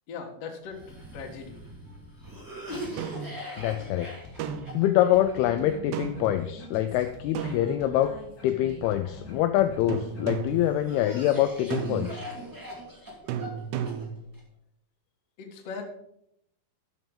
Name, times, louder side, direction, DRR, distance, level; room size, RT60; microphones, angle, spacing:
voice 1, 0.1-0.8 1.1-1.6 15.4-15.9, left 5 dB, 60° left, 2 dB, 1.7 m, -39 dB
Cough, 0.7-9.9 10.5-14.4, right 1 dB, 5° right, 1.7 m, -42 dB
sound 1, 3.0-3.4 4.4-4.9 5.9-6.4 7.4-8.2 9.9-10.7 11.7-12.3 13.3-14.3, right 8 dB, 80° right, 2.8 m, -34 dB
sound 2, 3.5-10.6, left 2 dB, 35° left, 1.6 m, -48 dB
voice 2, 3.6-4.1 4.7-8.2 8.4-12.2, left 12 dB, 85° left, 9 dB, 2.3 m, -25 dB
13.0 x 6.1 x 5.3 m, 0.75 s
omnidirectional pair, 4.9 m